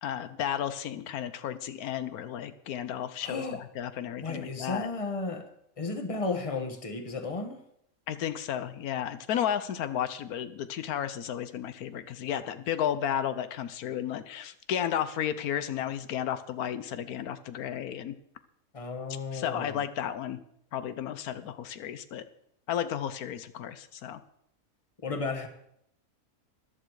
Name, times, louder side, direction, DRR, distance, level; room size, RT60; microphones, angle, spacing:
voice 1, 0.0-4.9 8.1-18.2 19.3-20.4 20.7-22.2 22.7-24.2, left 9 dB, 90° left, 12 dB, 1.3 m, -33 dB
voice 2, 3.2-3.6 4.2-5.5 5.8-7.6 18.7-19.8 25.0-25.5, left 3 dB, 25° left, 7 dB, 1.4 m, -33 dB
14.0 x 11.5 x 4.8 m, 0.73 s
omnidirectional pair, 1.5 m